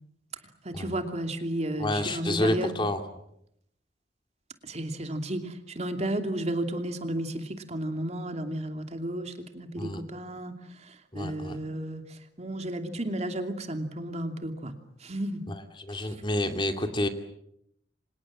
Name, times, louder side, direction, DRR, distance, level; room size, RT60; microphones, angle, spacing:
voice 1, 0.6-2.8 4.6-14.7 15.0-15.4 15.9-16.2, right 1 dB, 35° right, 6 dB, 2.8 m, -33 dB
voice 2, 1.8-3.0 9.8-10.0 11.1-11.6 15.5-17.1, left 1 dB, 25° left, 6 dB, 2.5 m, -29 dB
28.5 x 26.0 x 7.4 m, 0.76 s
head